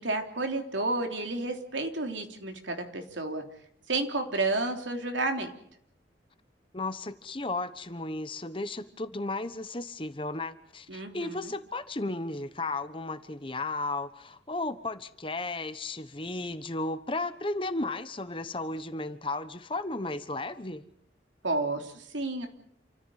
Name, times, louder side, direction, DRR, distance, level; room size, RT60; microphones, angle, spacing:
voice 1, 0.0-3.4 3.9-5.5 10.9-11.5 21.4-22.5, right 2 dB, 90° right, 4 dB, 3.3 m, -31 dB
voice 2, 6.7-20.8, left 2 dB, 30° left, 12 dB, 1.1 m, -34 dB
28.5 x 14.0 x 9.3 m, 0.70 s
head